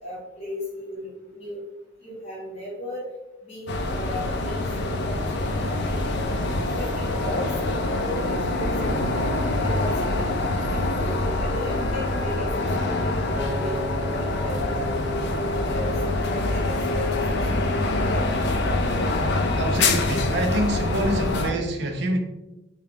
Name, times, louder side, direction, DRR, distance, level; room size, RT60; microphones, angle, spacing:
voice 1, 0.0-1.6 2.0-3.1 3.4-6.3 6.7-10.2 10.7-12.5 12.8-15.0 15.5-17.4 17.7-18.2 21.4-21.5, equal, 30° left, -8 dB, 1.3 m, -36 dB
sound 1, 3.7-21.5, left 2 dB, 55° left, 0.4 m, -25 dB
Acoustic guitar, 13.4-17.7 18.3-18.6, equal, 5° right, 0.5 m, -37 dB
voice 2, 19.6-22.2, right 1 dB, 55° right, 2 dB, 0.4 m, -26 dB
3.7 x 2.3 x 3.4 m, 1.0 s
head